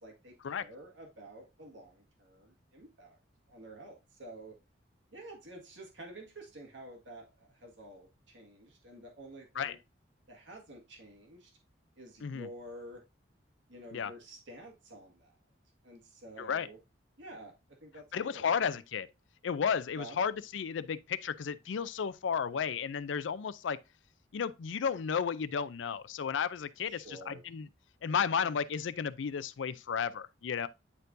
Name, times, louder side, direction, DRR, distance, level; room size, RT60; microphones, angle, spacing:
voice 1, 0.0-3.2 3.5-4.6 5.1-9.8 10.3-11.5 12.0-13.0 13.7-15.4 15.8-16.8 17.2-17.5 17.8-18.5 20.0-20.2 26.9-27.4, right 1 dB, 80° right, 1.8 m, -50 dB
voice 2, 18.1-19.1 19.4-23.8 24.3-27.7 28.0-30.7, left 7 dB, 80° left, 0.4 m, -33 dB
9.6 x 4.4 x 2.6 m
head